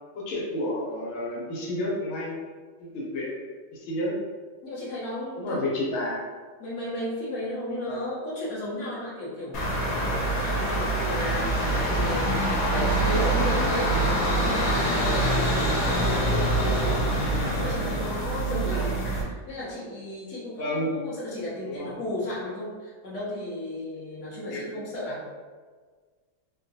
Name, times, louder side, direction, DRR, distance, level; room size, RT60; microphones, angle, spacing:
voice 1, 0.1-2.3 2.8-3.3 3.7-4.1 5.4-6.2 7.9-8.0 20.6-20.9 21.6-21.9 24.5-24.7, left 1 dB, 85° left, -4 dB, 1.7 m, -30 dB
voice 2, 4.6-5.6 6.6-9.7 10.2-13.9 14.3-17.0 17.4-19.0 19.2-25.2, left 1 dB, 45° left, -8 dB, 1.4 m, -34 dB
sound 1, 9.5-19.2, right 1 dB, 60° left, 1.0 m, -25 dB
4.7 x 2.3 x 2.7 m, 1.5 s
omnidirectional pair, 2.1 m